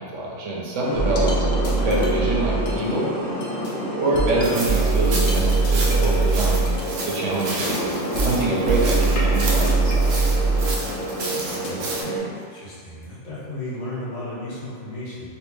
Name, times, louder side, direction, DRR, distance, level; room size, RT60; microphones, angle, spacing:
voice 1, 0.0-1.3 1.8-3.1 3.9-6.7 7.1-7.9 8.2-10.1, right 2 dB, 80° right, -4 dB, 1.1 m, -25 dB
sound 1, 0.8-12.2, right 1 dB, 15° left, 1.1 m, -29 dB
sound 2, 0.9-2.9 3.4-11.7, right 3 dB, 55° left, 0.6 m, -22 dB
sound 3, 4.4-12.0, right 2 dB, 65° right, 0.8 m, -32 dB
voice 2, 11.3-15.3, left 1 dB, 75° left, -10 dB, 1.5 m, -35 dB
3.3 x 2.8 x 3.1 m, 2.2 s
omnidirectional pair, 1.2 m